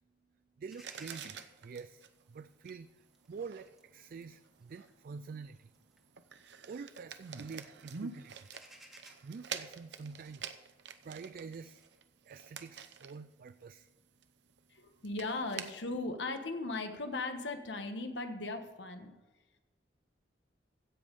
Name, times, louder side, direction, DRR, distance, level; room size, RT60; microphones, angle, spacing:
voice 1, 0.6-5.7 6.6-8.5 9.2-10.6 11.0-11.8 12.3-13.9, right 5 dB, 55° right, 12 dB, 0.3 m, -47 dB
sound 1, 0.7-6.9 7.3-7.8 8.1-12.0, equal, ahead, 1.4 m, -60 dB
sound 2, 0.8-13.6 14.0-14.2 14.5-14.6 15.0-15.7, right 6 dB, 75° right, 0.7 m, -47 dB
voice 2, 14.7-19.1, left 2 dB, 85° left, 6 dB, 1.3 m, -38 dB
16.0 x 5.3 x 5.3 m, 1.2 s
head